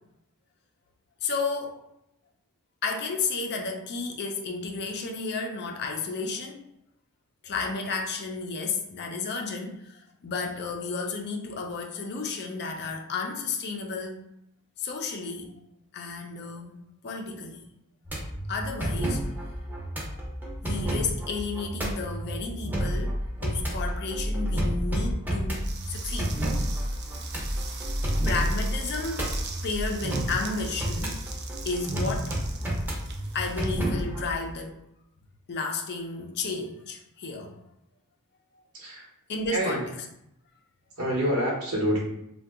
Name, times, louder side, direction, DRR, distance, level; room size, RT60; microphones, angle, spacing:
voice 1, 1.2-1.8 2.8-6.6 7.4-14.2 14.8-15.5 15.9-16.8 17.0-17.6 18.5-19.2 20.1-20.2 20.6-26.4 28.2-31.2 31.6-32.4 33.3-34.8 35.5-37.6 39.3-39.8, left 4 dB, 50° left, 3 dB, 0.4 m, -32 dB
sound 1, 18.0-34.4, equal, 10° right, 0.7 m, -30 dB
sound 2, 25.5-34.5, right 5 dB, 50° right, 0.4 m, -42 dB
voice 2, 39.5-39.8 41.0-42.0, equal, 75° right, -3 dB, 1.0 m, -26 dB
2.7 x 2.2 x 3.5 m, 0.79 s
head